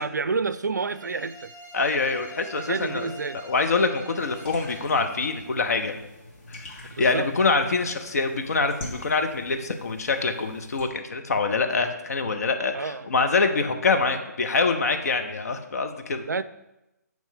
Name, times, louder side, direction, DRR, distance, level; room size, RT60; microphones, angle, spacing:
voice 1, 0.0-1.5 2.7-3.4 6.9-7.3 12.7-13.1 16.2-16.4, right 4 dB, 75° right, 15 dB, 0.3 m, -29 dB
sound 1, 0.8-5.6, right 2 dB, 15° right, 0.9 m, -45 dB
voice 2, 1.7-3.1 3.4-6.0 6.6-16.3, left 4 dB, 60° left, 6 dB, 0.7 m, -25 dB
sound 2, 4.2-10.9, left 1 dB, 35° left, 1.5 m, -44 dB
7.1 x 3.1 x 5.4 m, 0.94 s
figure-of-eight pair, 140°, 10 cm